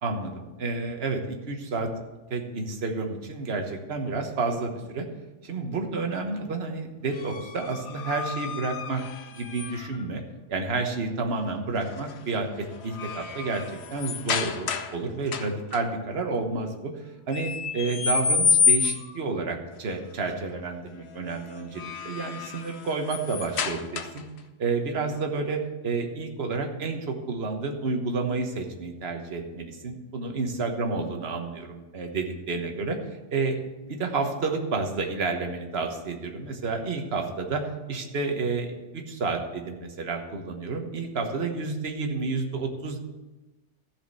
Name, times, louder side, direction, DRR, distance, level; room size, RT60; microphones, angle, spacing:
voice 1, 0.0-1.9 2.3-5.0 5.4-9.0 9.3-10.2 10.5-13.6 13.9-16.9 17.3-24.2 24.6-33.0 33.3-33.6 33.9-43.0, right 3 dB, 55° right, 4 dB, 1.5 m, -30 dB
sound 1, 7.1-10.0 11.8-12.1 12.5-15.0 15.3-15.8 17.3-19.2 21.5-24.4, left 5 dB, 65° left, 1.0 m, -29 dB
14.5 x 5.0 x 6.5 m, 1.1 s
omnidirectional pair, 1.2 m